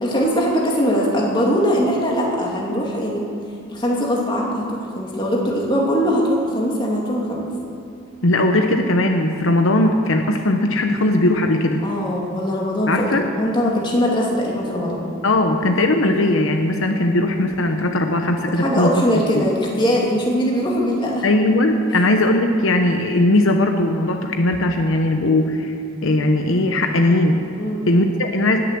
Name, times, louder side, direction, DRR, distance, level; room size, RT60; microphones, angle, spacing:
voice 1, 0.0-3.3 3.7-7.5 11.8-15.0 18.5-21.2 27.6-27.8, equal, 20° left, -3 dB, 2.5 m, -21 dB
voice 2, 8.2-11.8 12.9-13.3 15.2-18.9 19.3-19.5 21.2-25.7 26.0-27.4 27.9-28.6, left 1 dB, 75° left, 5 dB, 0.9 m, -18 dB
19.5 x 6.9 x 7.6 m, 2.5 s
head